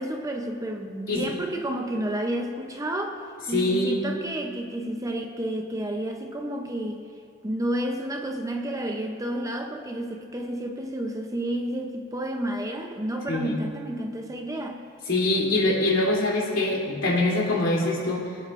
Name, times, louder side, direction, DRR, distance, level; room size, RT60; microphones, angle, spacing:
voice 1, 0.0-3.2 3.5-7.0 7.4-14.8, right 1 dB, 15° right, 4 dB, 0.6 m, -30 dB
voice 2, 3.5-4.0 13.3-13.6 15.1-18.3, left 2 dB, 70° left, -4 dB, 3.1 m, -24 dB
24.5 x 8.9 x 2.5 m, 2.4 s
head